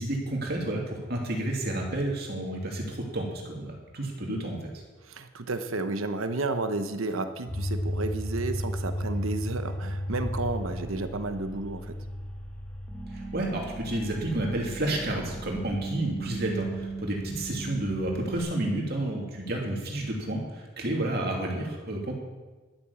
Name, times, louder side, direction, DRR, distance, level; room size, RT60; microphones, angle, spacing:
voice 1, 0.0-4.7 13.1-22.1, right 1 dB, 50° right, 0 dB, 2.7 m, -30 dB
voice 2, 5.0-12.0, right 3 dB, 80° right, 8 dB, 1.0 m, -32 dB
sound 1, 7.5-18.4, equal, 5° left, 1.5 m, -35 dB
12.0 x 8.8 x 7.1 m, 1.3 s
head